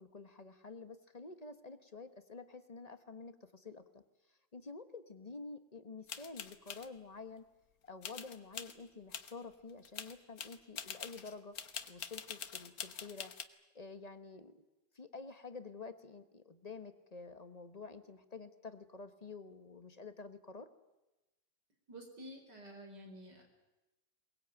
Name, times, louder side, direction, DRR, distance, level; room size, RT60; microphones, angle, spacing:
voice 1, 0.0-4.0 4.5-7.5 7.8-11.6 11.9-13.3 13.7-14.6 14.9-20.7, left 4 dB, 25° left, 10 dB, 0.9 m, -49 dB
sound 1, 6.1-6.9 8.0-8.7 9.1-9.3 9.7-13.4, left 7 dB, 50° left, 1.5 m, -45 dB
voice 2, 21.9-23.5, equal, 55° right, 3 dB, 5.3 m, -50 dB
22.0 x 21.0 x 9.0 m, 1.0 s
omnidirectional pair, 2.1 m